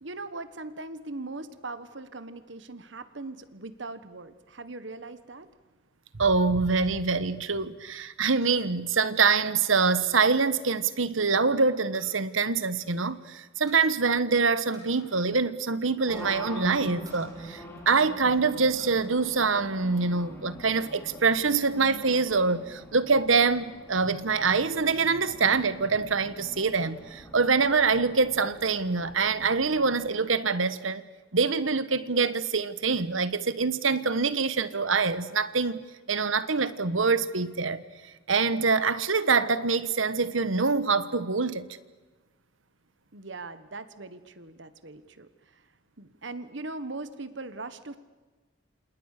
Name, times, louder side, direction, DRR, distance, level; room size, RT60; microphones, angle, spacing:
voice 1, 0.0-5.5 43.1-45.7 46.0-48.0, right 2 dB, 65° right, 1.5 m, -40 dB
voice 2, 6.2-31.0 31.3-37.8 38.3-41.7, right 4 dB, 80° right, 1.4 m, -25 dB
sound 1, 11.9-13.3 13.7-14.0 14.7-15.3 15.6-15.7 16.1-16.4 17.0-18.2 18.5-19.0 19.5-20.2, right 2 dB, 20° right, 6.5 m, -54 dB
Race car auto racing, 16.1-30.1, equal, 10° left, 4.0 m, -45 dB
28.5 x 28.0 x 6.8 m
head